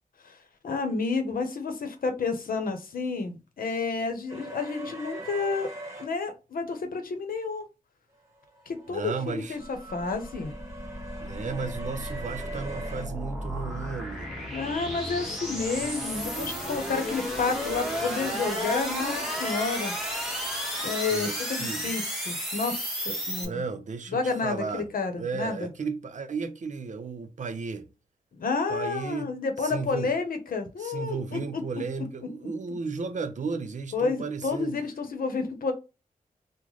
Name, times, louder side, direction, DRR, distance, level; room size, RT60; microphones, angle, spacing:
voice 1, 0.6-5.7 6.0-7.6 8.7-10.5 14.5-19.9 20.8-23.5 24.1-25.7 28.3-31.6 33.9-35.7, left 4 dB, 85° left, 0.8 m, -30 dB
sound 1, 4.3-6.1 8.5-13.1 15.5-16.8, right 2 dB, 20° right, 1.2 m, -42 dB
voice 2, 8.9-9.6 11.2-14.5 21.1-21.9 23.1-24.9 25.2-27.9 28.7-29.3 29.6-30.1 30.8-34.8, right 5 dB, 60° right, 0.5 m, -34 dB
sound 2, 9.5-23.5, equal, ahead, 1.0 m, -33 dB
3.1 x 2.1 x 3.8 m
wide cardioid pair, 150°, 14 cm